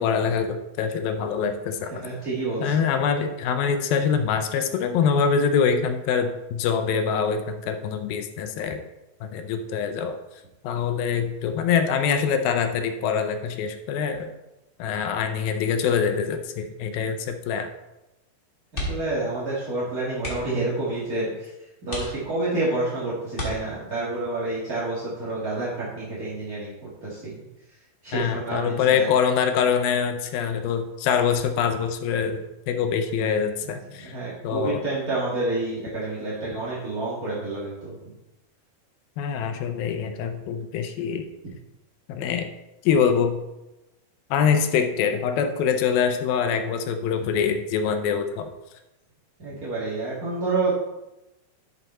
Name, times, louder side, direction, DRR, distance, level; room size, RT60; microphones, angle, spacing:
voice 1, 0.0-2.1 2.6-8.8 9.2-10.2 10.6-14.3 14.8-17.7 28.1-34.1 34.4-34.8 39.2-41.3 42.1-42.5 42.8-43.4 44.3-48.5, left 6 dB, 80° left, 7 dB, 2.4 m, -24 dB
voice 2, 2.0-2.7 18.7-21.5 21.8-26.7 27.0-27.4 28.0-29.1 33.6-37.9 49.4-50.7, right 2 dB, 40° right, -9 dB, 1.4 m, -29 dB
sound 1, 18.7-19.2 19.5-19.7 20.1-20.6 21.3-21.4 21.8-22.6 23.3-24.1 25.7-26.0 26.3-26.4, left 1 dB, 25° left, 1.6 m, -33 dB
11.0 x 5.3 x 4.3 m, 0.97 s
omnidirectional pair, 4.4 m